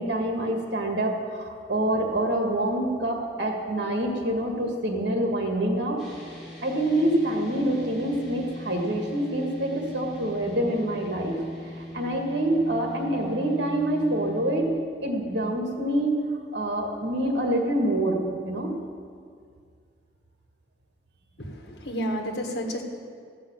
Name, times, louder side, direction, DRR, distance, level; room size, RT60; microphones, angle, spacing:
voice 1, 0.0-6.0 6.6-11.4 11.8-14.7 15.0-16.2 16.5-18.7, right 1 dB, 75° right, 1 dB, 1.9 m, -26 dB
sound 1, 6.0-14.7, left 1 dB, ahead, 3.2 m, -40 dB
voice 2, 21.4-22.8, equal, 70° left, 2 dB, 1.7 m, -31 dB
14.0 x 5.6 x 8.5 m, 2.1 s
head